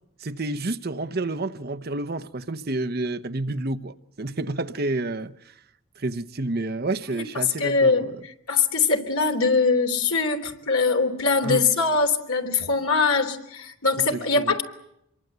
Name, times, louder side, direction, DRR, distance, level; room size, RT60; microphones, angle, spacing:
voice 1, 0.2-5.3 6.0-8.1 11.4-11.6 14.4-14.5, right 2 dB, 45° right, 0.9 m, -29 dB
voice 2, 7.6-14.6, left 4 dB, 80° left, 3.4 m, -22 dB
27.0 x 23.0 x 8.1 m
head